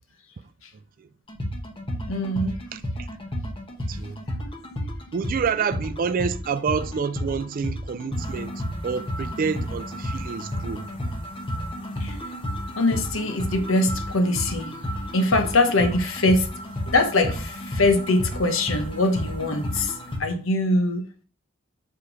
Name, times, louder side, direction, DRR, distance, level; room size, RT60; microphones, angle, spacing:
sound 1, 1.3-20.2, equal, 25° left, 1.2 m, -32 dB
voice 1, 2.1-2.6 12.0-12.2 12.8-14.7 15.1-16.5 16.9-21.2, left 2 dB, 80° left, 1.0 m, -23 dB
voice 2, 3.9-4.2 5.1-8.5 8.8-10.9, right 6 dB, 45° right, 0.4 m, -28 dB
5.8 x 4.9 x 4.8 m
head